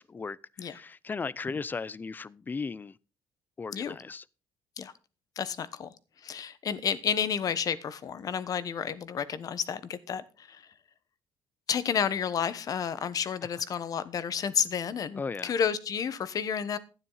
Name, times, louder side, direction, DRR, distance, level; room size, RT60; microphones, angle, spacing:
voice 1, 0.0-3.0 3.6-4.2 15.1-15.5, left 4 dB, 25° left, 0.5 m, -36 dB
voice 2, 5.4-5.9 6.2-10.6 11.7-16.8, left 7 dB, 45° left, 1.1 m, -31 dB
12.0 x 9.7 x 4.0 m
cardioid pair, 110°, 8 cm